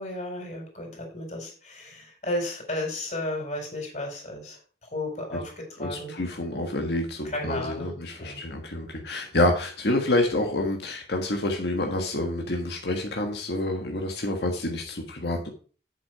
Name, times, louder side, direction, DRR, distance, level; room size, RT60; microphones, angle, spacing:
voice 1, 0.0-4.6 4.9-5.5 5.8-6.1 7.2-8.4, left 1 dB, 40° left, 1 dB, 4.7 m, -33 dB
voice 2, 5.8-15.5, left 1 dB, 75° left, 2 dB, 1.5 m, -28 dB
8.4 x 7.5 x 4.8 m, 0.39 s
head